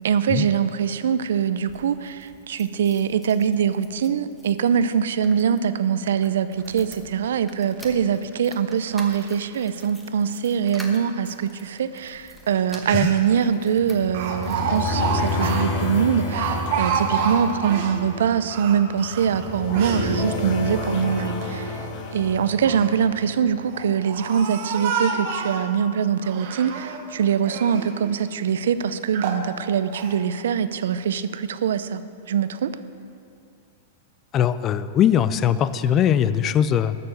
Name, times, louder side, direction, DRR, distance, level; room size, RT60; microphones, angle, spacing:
voice 1, 0.0-32.0 32.3-32.7, right 7 dB, 85° right, 13 dB, 0.5 m, -23 dB
sound 1, 1.5-15.5 16.1-17.0 17.3-17.4 17.6-17.7, equal, ahead, 1.1 m, -47 dB
Speech, 12.6-12.7 12.8-13.4 14.1-18.0 18.4-20.1 20.6-21.5 22.4-23.0 23.7-25.7 26.2-27.0 27.4-27.9 28.5-28.6 29.1-29.5 29.9-30.2, right 5 dB, 50° right, 1.2 m, -29 dB
sound 2, 13.8-23.9, left 2 dB, 40° left, 1.3 m, -30 dB
voice 2, 34.3-36.9, left 9 dB, 25° left, 14 dB, 0.3 m, -20 dB
13.0 x 6.8 x 6.4 m, 2.5 s
supercardioid pair, 155°, 0 cm